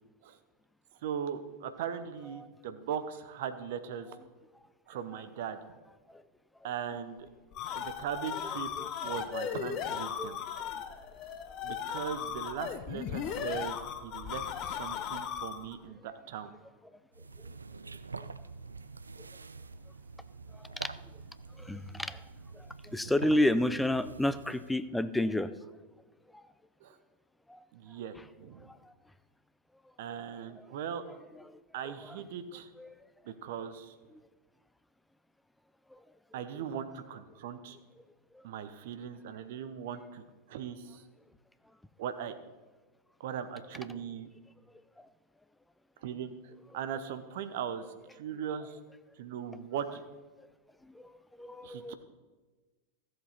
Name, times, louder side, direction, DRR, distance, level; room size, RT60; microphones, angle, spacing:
voice 1, 1.0-4.1 4.9-5.6 6.6-7.3 7.7-8.7 9.0-10.4 11.6-16.5 23.0-23.1 26.8-27.0 27.7-28.7 30.0-31.0 31.7-32.7 33.2-33.9 36.3-37.8 38.4-40.2 40.5-41.0 42.0-42.3 43.2-44.3 46.0-46.3 46.7-47.8 48.1-48.8 49.2-50.0 51.6-51.9, right 8 dB, 55° right, 10 dB, 0.8 m, -39 dB
sound 1, 7.3-15.8, left 8 dB, 35° left, 0.8 m, -37 dB
sound 2, 17.1-24.8, right 4 dB, 80° right, 0.3 m, -46 dB
voice 2, 21.6-22.2 22.5-25.5 26.3-26.4 27.5-27.6 28.7-28.9 30.1-30.2 30.6-30.7 31.0-31.5 31.8-32.2 32.8-32.9 35.9-36.0 45.0-45.1 50.8-51.1 51.4-51.9, left 1 dB, 5° left, 13 dB, 0.5 m, -31 dB
14.0 x 7.7 x 4.2 m, 1.3 s
figure-of-eight pair, 90°, 0 cm